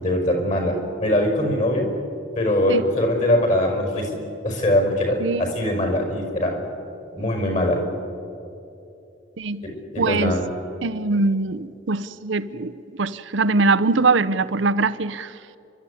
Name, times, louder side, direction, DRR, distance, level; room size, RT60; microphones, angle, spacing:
voice 1, 0.0-1.9 2.4-6.6 7.1-7.8 9.6-10.5, left 1 dB, 40° left, 5.3 m, -22 dB
voice 2, 5.2-5.5 9.4-9.6 10.0-10.4 10.8-12.7 13.0-15.3, right 3 dB, 75° right, 0.7 m, -22 dB
30.0 x 12.5 x 10.0 m
head